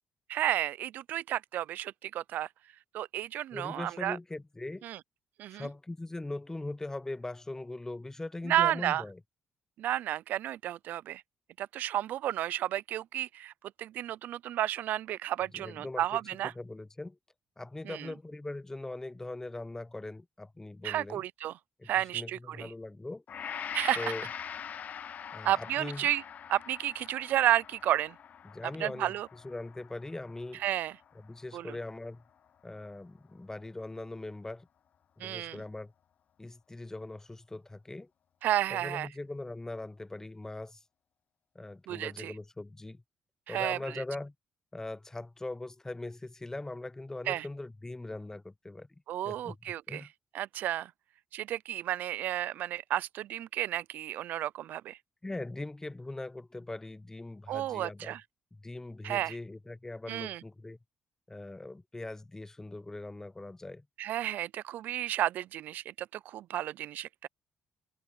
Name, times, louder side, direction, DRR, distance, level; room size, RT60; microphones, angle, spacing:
voice 1, 0.3-2.5 2.9-4.2 4.8-5.0 5.4-5.7 8.5-9.0 9.8-11.2 11.6-13.5 13.8-16.5 17.8-18.1 20.8-21.6 21.9-22.7 23.7-24.0 25.4-26.2 26.5-28.2 28.8-29.3 30.6-30.9 31.5-31.8 35.2-35.6 38.4-39.1 41.9-42.3 43.5-44.0 47.3-47.5 49.1-50.1 50.3-50.9 51.3-55.0 57.5-58.2 59.0-59.4 60.1-60.4 64.0-67.3, right 13 dB, 75° right, 0.5 m, -32 dB
voice 2, 3.5-4.9 5.5-9.2 15.5-16.0 16.6-17.2 17.6-21.2 21.8-23.2 24.0-24.3 25.3-26.1 28.4-30.7 31.2-32.2 32.6-34.7 35.2-35.9 36.4-38.1 38.7-40.8 41.5-43.0 43.5-44.3 44.7-48.9 49.2-49.5 49.9-50.1 55.2-58.1 58.6-60.8 61.3-63.8, left 2 dB, 15° left, 1.0 m, -41 dB
Gong, 23.3-31.6 32.0-32.2, left 8 dB, 60° left, 0.9 m, -43 dB
supercardioid pair, 55°, 3 cm